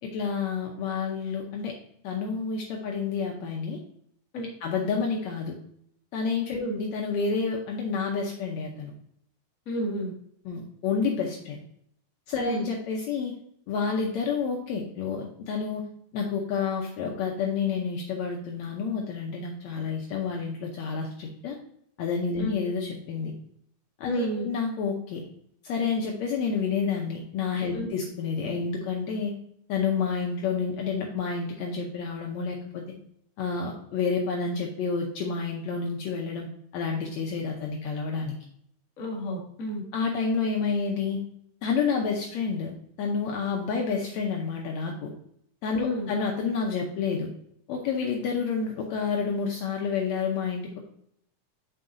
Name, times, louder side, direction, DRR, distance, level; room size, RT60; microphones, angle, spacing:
voice 1, 0.0-1.7 2.0-3.8 4.6-5.5 6.1-8.9 10.4-11.6 12.3-13.3 13.7-15.8 16.1-21.6 22.0-23.3 24.0-25.2 25.6-29.3 29.7-32.8 33.4-36.5 36.7-38.4 39.9-41.2 41.6-42.7 43.0-45.1 45.6-47.3 47.7-50.8, left 5 dB, 75° left, 1 dB, 1.8 m, -29 dB
voice 2, 9.6-10.1 12.4-12.6 22.4-22.5 24.0-24.5 27.7-27.9 39.0-39.8 45.8-46.1, equal, 40° left, -1 dB, 1.3 m, -30 dB
7.5 x 5.7 x 2.6 m, 0.69 s
omnidirectional pair, 3.7 m